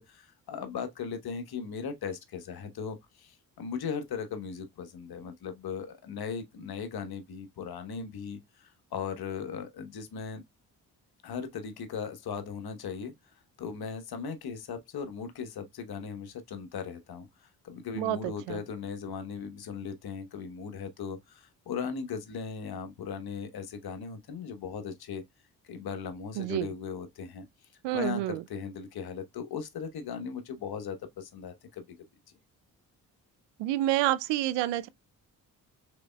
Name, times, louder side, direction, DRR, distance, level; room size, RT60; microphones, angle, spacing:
voice 1, 0.0-10.4 11.2-13.1 13.6-25.2 25.6-27.4 27.9-32.0, left 6 dB, 60° left, 1.2 m, -38 dB
voice 2, 18.0-18.6 26.4-26.7 27.8-28.4 33.6-34.9, right 14 dB, 85° right, 0.6 m, -28 dB
5.0 x 3.8 x 2.2 m
supercardioid pair, 45°, 41 cm